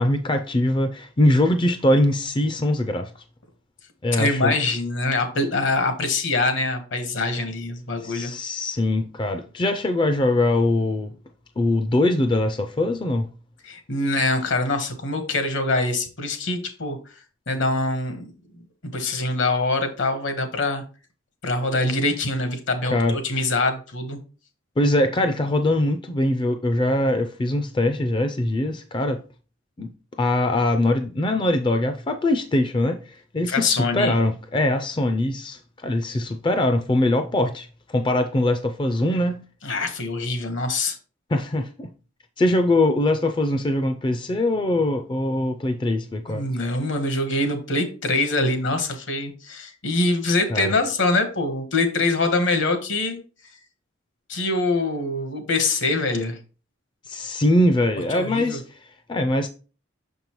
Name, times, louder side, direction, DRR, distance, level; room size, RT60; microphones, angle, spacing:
voice 1, 0.0-3.1 4.0-4.5 8.0-11.1 11.6-13.3 22.8-23.2 24.8-29.2 29.8-29.9 30.2-39.4 41.3-41.9 42.4-46.4 50.5-50.7 57.1-58.6 59.1-59.5, left 1 dB, 25° left, 0.4 m, -22 dB
voice 2, 4.1-8.3 13.7-17.0 17.5-18.2 18.9-20.8 21.4-24.2 33.5-34.2 39.6-41.0 46.3-53.2 54.3-56.4 58.1-58.6, left 2 dB, 70° left, 1.2 m, -24 dB
6.2 x 5.3 x 3.0 m
head